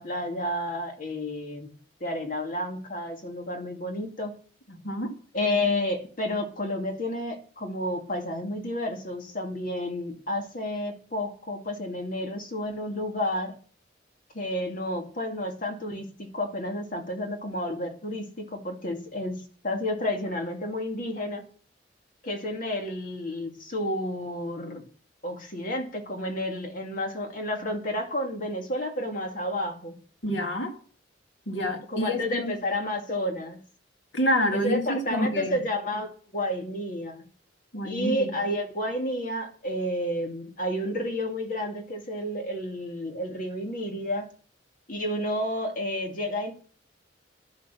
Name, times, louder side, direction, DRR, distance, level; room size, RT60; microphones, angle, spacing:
voice 1, 0.0-1.7 2.0-4.3 5.3-13.5 14.3-21.4 22.2-24.8 25.2-30.0 31.9-33.6 34.5-37.2 37.8-44.3 44.9-46.5, left 1 dB, 45° left, 2.3 m, -31 dB
voice 2, 4.7-5.1 30.2-30.8 31.5-32.5 34.1-35.6 37.7-38.3, left 1 dB, 85° left, 2.1 m, -28 dB
11.0 x 6.8 x 6.1 m
head